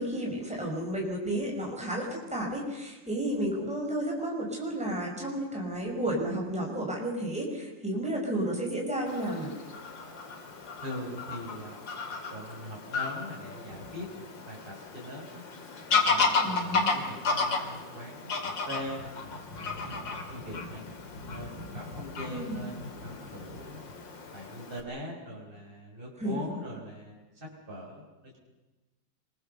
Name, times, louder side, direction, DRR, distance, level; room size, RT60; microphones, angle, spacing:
voice 1, 0.0-9.5 16.4-17.0 22.2-22.7 26.2-26.4, right 1 dB, 5° right, -1 dB, 5.5 m, -32 dB
Fowl / Bird vocalization bird call bird song, 9.1-24.8, left 4 dB, 80° left, 3.2 m, -33 dB
voice 2, 10.8-11.8 12.3-15.4 16.1-20.8 21.3-23.8 24.3-28.4, equal, 30° right, -3 dB, 5.2 m, -42 dB
26.5 x 22.0 x 6.8 m, 1.1 s
omnidirectional pair, 2.0 m